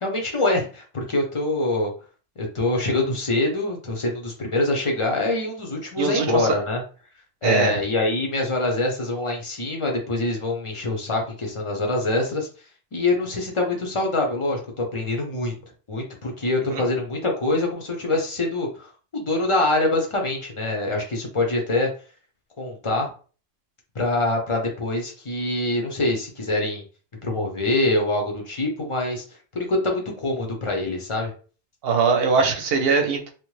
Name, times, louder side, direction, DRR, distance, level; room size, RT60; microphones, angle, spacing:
voice 1, 0.0-1.9 2.4-6.8 7.4-12.5 12.9-15.5 15.9-21.9 22.6-23.1 23.9-26.8 27.2-29.2 29.5-31.3 32.4-32.5, left 2 dB, 35° left, 1 dB, 0.6 m, -24 dB
voice 2, 6.0-6.6 7.4-7.8 16.7-16.8 31.8-33.3, right 5 dB, 60° right, 4 dB, 0.8 m, -21 dB
3.0 x 2.1 x 3.1 m, 0.38 s
omnidirectional pair, 1.3 m